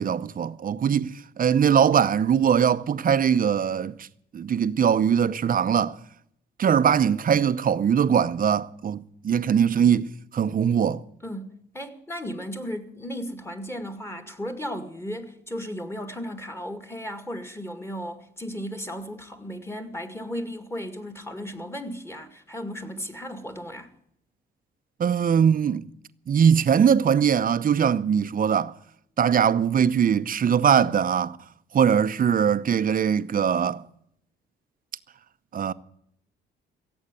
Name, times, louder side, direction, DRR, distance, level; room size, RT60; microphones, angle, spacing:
voice 1, 0.0-4.1 4.3-6.0 6.6-11.0 25.0-25.9 26.3-28.7 29.2-31.4 31.7-33.8 35.5-35.7, right 8 dB, 45° right, 0.7 m, -21 dB
voice 2, 11.2-23.9, equal, 10° left, 2.2 m, -35 dB
16.5 x 8.0 x 9.7 m
cardioid pair, 90°, 20 cm